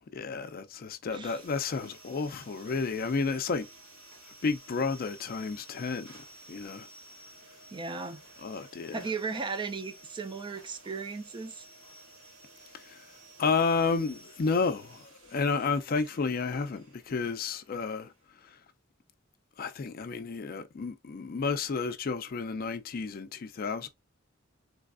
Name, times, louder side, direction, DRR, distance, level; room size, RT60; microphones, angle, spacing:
voice 1, 0.1-3.7 4.4-6.1 6.5-6.9 8.4-9.0 12.7-13.0 13.4-15.0 15.3-18.1 19.6-23.9, left 4 dB, 45° left, 0.4 m, -31 dB
voice 2, 1.1-1.4 7.7-8.2 8.9-11.7, right 4 dB, 25° right, 0.3 m, -36 dB
sound 1, 1.2-18.5, right 1 dB, 85° right, 2.2 m, -54 dB
3.3 x 3.1 x 2.4 m
head